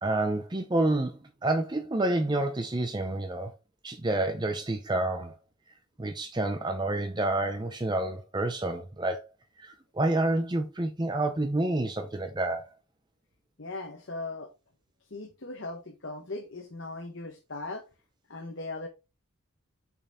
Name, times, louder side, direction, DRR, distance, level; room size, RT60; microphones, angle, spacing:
voice 1, 0.0-3.5 3.8-5.4 6.0-9.2 9.6-12.7, right 2 dB, 20° right, 0.6 m, -29 dB
voice 2, 13.6-14.5 15.1-17.8 18.3-18.9, left 2 dB, 60° left, 1.1 m, -38 dB
6.7 x 5.5 x 3.5 m
head